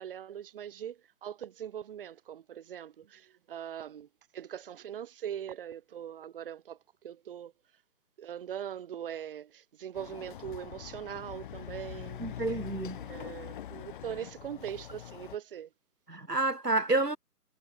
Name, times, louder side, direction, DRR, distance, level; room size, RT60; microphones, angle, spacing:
voice 1, 0.0-7.5 8.2-12.4 13.0-15.7, right 9 dB, 35° right, 2.5 m, -41 dB
Chatter / Car passing by / Motorcycle, 9.9-15.4, left 11 dB, 35° left, 4.3 m, -43 dB
voice 2, 12.2-13.0 16.1-17.2, right 2 dB, 90° right, 4.1 m, -29 dB
figure-of-eight pair, 145°, 46 cm